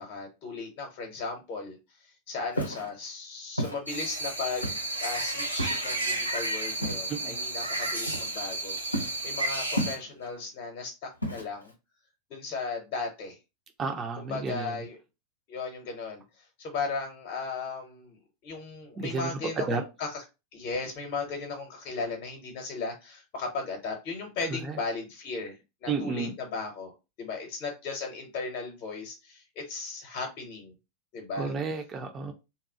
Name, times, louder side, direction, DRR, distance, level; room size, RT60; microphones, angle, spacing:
voice 1, 0.0-1.8 2.0-11.7 12.3-13.4 14.2-15.0 15.5-20.2 20.5-26.9 27.2-30.8 31.1-31.5, left 4 dB, 40° left, 0.7 m, -36 dB
Walk footsteps, 2.5-2.9 3.6-3.8 4.6-5.0 5.6-5.9 6.8-7.1 8.1-8.5 8.9-9.2 9.8-10.3 11.2-11.7, equal, 85° left, 0.5 m, -32 dB
sound 1, 3.9-10.0, right 2 dB, 80° right, 0.6 m, -32 dB
voice 2, 13.8-14.8 19.0-19.8 24.5-24.8 25.9-26.3 31.4-32.3, right 4 dB, 25° right, 0.5 m, -32 dB
2.8 x 2.3 x 2.7 m
figure-of-eight pair, 90°, 0 cm